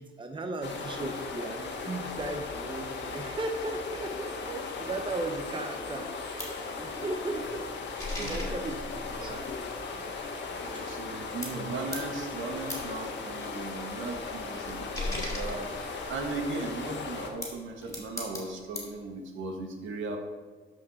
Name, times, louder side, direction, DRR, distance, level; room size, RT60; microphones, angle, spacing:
voice 1, 0.0-7.7 8.0-8.8 9.2-9.4 9.9-10.2 10.7-10.8, right 2 dB, 25° right, 6 dB, 0.8 m, -36 dB
sound 1, 0.6-17.3, left 4 dB, 65° left, 1.7 m, -37 dB
sound 2, 6.4-11.2 11.4-16.4 17.1-19.0, left 1 dB, 15° left, 2.6 m, -40 dB
voice 2, 8.2-8.6 10.6-20.2, right 3 dB, 75° right, 3 dB, 1.6 m, -37 dB
12.5 x 5.3 x 4.2 m, 1.5 s
cardioid pair, 90°, 20 cm